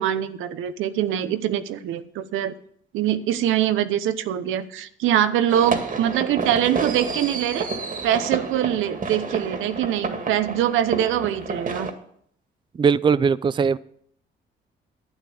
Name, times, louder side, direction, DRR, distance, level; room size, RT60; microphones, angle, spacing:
voice 1, 0.0-2.5 2.9-7.7 8.0-11.9, right 11 dB, 90° right, 0.9 m, -23 dB
sound 1, 5.5-11.9, right 4 dB, 40° right, 1.9 m, -30 dB
voice 2, 12.8-13.8, right 6 dB, 25° right, 0.4 m, -19 dB
12.0 x 9.0 x 6.9 m
cardioid pair, 90°, 20 cm